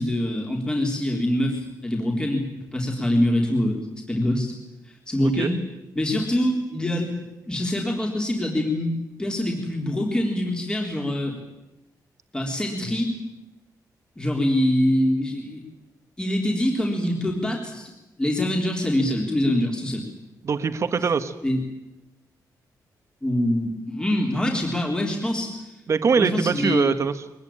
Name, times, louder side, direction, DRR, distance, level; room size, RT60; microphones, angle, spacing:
voice 1, 0.0-3.8 4.1-4.5 5.1-5.6 5.9-8.9 9.2-11.4 12.3-13.1 14.2-15.6 16.2-17.9 18.2-20.0 21.4-21.6 23.2-25.6 26.2-26.9, left 1 dB, 10° left, 0 dB, 3.9 m, -24 dB
voice 2, 20.4-21.3 25.9-27.2, right 5 dB, 40° right, 10 dB, 1.5 m, -22 dB
23.0 x 20.5 x 8.8 m, 0.97 s
wide cardioid pair, 155°, 7 cm